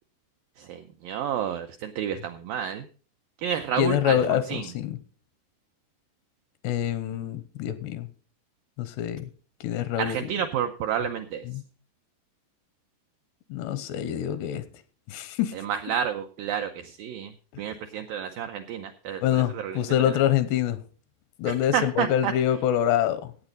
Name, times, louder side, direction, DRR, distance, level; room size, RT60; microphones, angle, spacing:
voice 1, 0.6-2.9 3.4-4.7 10.0-11.4 15.6-17.3 17.6-19.8 21.5-22.3, right 9 dB, 90° right, 2.0 m, -30 dB
voice 2, 3.8-5.0 6.6-8.1 8.8-9.3 9.6-10.3 11.5-11.6 13.5-14.6 15.1-15.5 19.2-20.8 21.4-23.3, left 11 dB, 85° left, 3.0 m, -25 dB
15.0 x 8.8 x 4.0 m
omnidirectional pair, 4.8 m